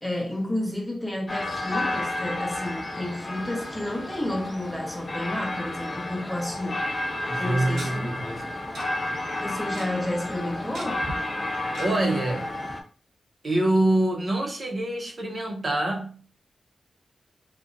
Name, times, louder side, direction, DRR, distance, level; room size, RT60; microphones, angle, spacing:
voice 1, 0.0-6.8 7.4-8.1 9.4-11.1, left 1 dB, 10° left, 0.7 m, -31 dB
sound 1, 1.3-12.8, left 1 dB, 35° left, 0.4 m, -31 dB
Tick-tock, 6.8-6.9 7.7-7.9 8.7-8.9 9.1-9.2 9.5-9.9 10.7-11.1 11.7-11.9 12.3-12.4 12.7-12.8, right 2 dB, 85° right, 0.8 m, -37 dB
voice 2, 7.3-8.5 11.8-12.5 13.4-16.2, right 1 dB, 40° right, 0.6 m, -25 dB
2.7 x 2.1 x 2.5 m
cardioid pair, 80°, 0 cm